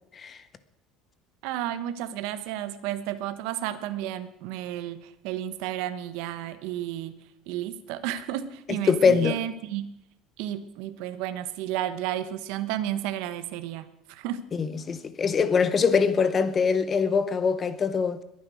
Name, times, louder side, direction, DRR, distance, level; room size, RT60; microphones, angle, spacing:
voice 1, 1.4-7.1 7.5-9.9 10.4-14.4, right 12 dB, 65° right, 1.2 m, -32 dB
voice 2, 8.9-9.4 14.5-18.2, left 5 dB, 20° left, 0.8 m, -23 dB
21.5 x 9.5 x 6.4 m
cardioid pair, 175°, 0 cm